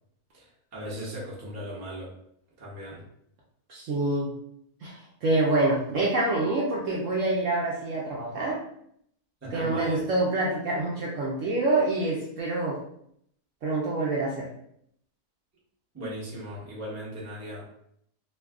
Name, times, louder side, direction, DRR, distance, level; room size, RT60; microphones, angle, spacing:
voice 1, 0.3-2.1 2.6-3.1 9.4-10.0 15.9-17.6, equal, 15° right, -6 dB, 0.5 m, -38 dB
voice 2, 3.7-4.3 4.8-8.6 9.5-12.8 13.6-14.5, right 2 dB, 65° right, -3 dB, 0.8 m, -26 dB
2.6 x 2.3 x 3.5 m, 0.71 s
omnidirectional pair, 1.7 m